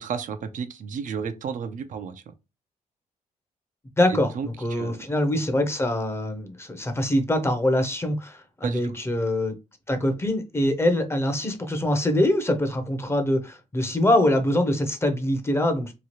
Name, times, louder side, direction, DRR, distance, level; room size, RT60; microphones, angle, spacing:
voice 1, 0.0-2.3 4.1-5.0 8.6-9.0, right 6 dB, 70° right, 0.4 m, -33 dB
voice 2, 4.0-9.6 9.9-15.9, left 1 dB, 20° left, 0.6 m, -24 dB
2.9 x 2.3 x 2.9 m
cardioid pair, 100°, 14 cm